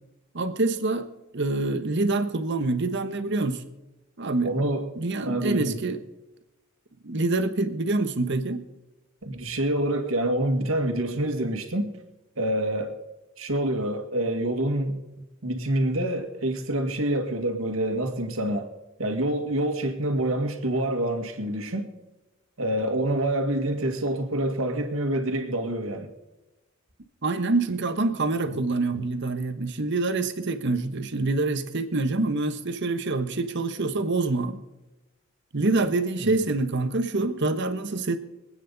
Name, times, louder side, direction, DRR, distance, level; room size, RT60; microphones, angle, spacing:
voice 1, 0.3-1.1 1.3-3.6 4.2-4.7 5.0-6.0 7.0-8.6 27.2-34.6 35.5-38.2, right 2 dB, 60° right, 10 dB, 1.2 m, -26 dB
voice 2, 4.4-4.9 5.2-5.8 9.2-11.9 12.4-12.9 13.4-15.0 15.4-18.7 19.0-21.9 22.6-26.1 36.2-36.4, right 1 dB, 90° right, 5 dB, 2.0 m, -27 dB
24.5 x 9.3 x 4.0 m, 1.1 s
head